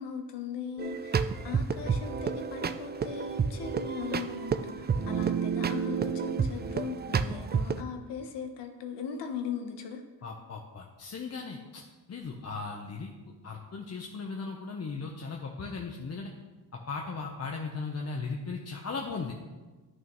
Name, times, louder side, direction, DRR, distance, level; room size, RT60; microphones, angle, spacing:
voice 1, 0.0-10.0, left 6 dB, 80° left, 5 dB, 1.1 m, -39 dB
sound 1, 0.8-7.8, right 6 dB, 25° right, 0.4 m, -30 dB
voice 2, 10.2-11.8 12.1-13.1 13.4-16.3 16.9-19.3, left 4 dB, 40° left, 1 dB, 0.9 m, -37 dB
11.0 x 6.2 x 3.1 m, 1.3 s
cardioid pair, 80°, 40 cm